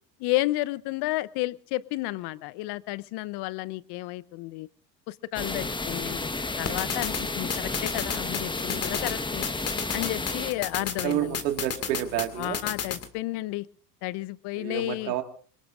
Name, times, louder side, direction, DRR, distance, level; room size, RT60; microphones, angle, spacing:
voice 1, 0.2-4.7 5.1-6.2 6.6-9.4 9.9-11.4 12.4-13.7 14.0-15.2, left 18 dB, 55° left, 20 dB, 0.8 m, -32 dB
sound 1, 5.3-10.5, left 3 dB, 10° left, 1.2 m, -32 dB
sound 2, 6.6-13.1, left 7 dB, 30° left, 2.1 m, -34 dB
voice 2, 11.0-12.6 14.6-15.2, right 12 dB, 80° right, 7 dB, 2.0 m, -29 dB
25.5 x 21.5 x 2.5 m, 0.43 s
hypercardioid pair, 90°, 50 cm